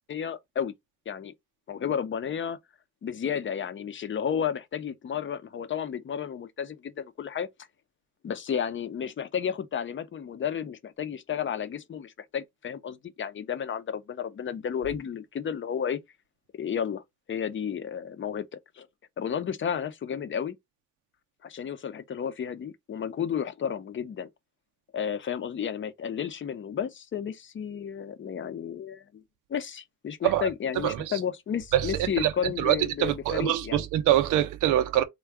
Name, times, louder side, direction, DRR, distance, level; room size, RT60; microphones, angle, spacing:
voice 1, 0.1-0.7 1.1-1.3 1.7-2.6 3.0-7.5 8.2-16.0 16.5-17.0 17.3-18.9 19.2-20.6 21.4-24.3 24.9-29.2 29.5-33.8, left 8 dB, 40° left, 0.6 m, -32 dB
voice 2, 31.7-32.3 32.6-35.0, right 12 dB, 85° right, 0.6 m, -24 dB
3.5 x 2.3 x 3.4 m
cardioid pair, 90°, 30 cm